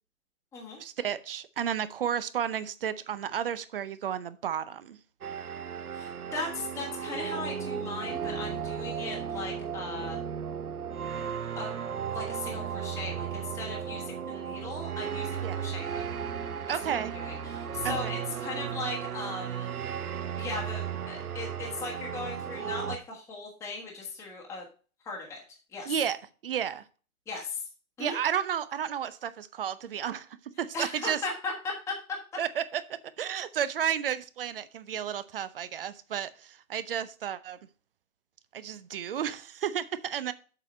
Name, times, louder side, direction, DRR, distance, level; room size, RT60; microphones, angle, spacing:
voice 1, 0.8-5.0 15.4-15.6 16.7-17.1 17.8-18.1 25.9-26.2 26.4-26.8 28.0-30.3 30.6-31.2 32.4-37.6 38.5-40.3, right 9 dB, 40° right, 0.6 m, -32 dB
sound 1, 5.2-23.0, right 8 dB, 85° right, 0.8 m, -35 dB
voice 2, 5.9-10.2 11.6-11.7 12.1-16.0 16.8-19.7 20.4-24.6 25.0-25.4 25.7-25.9 27.3-27.6 28.0-28.2 30.7-31.9, left 3 dB, 5° left, 1.3 m, -38 dB
7.6 x 4.8 x 5.2 m
figure-of-eight pair, 135°, 43 cm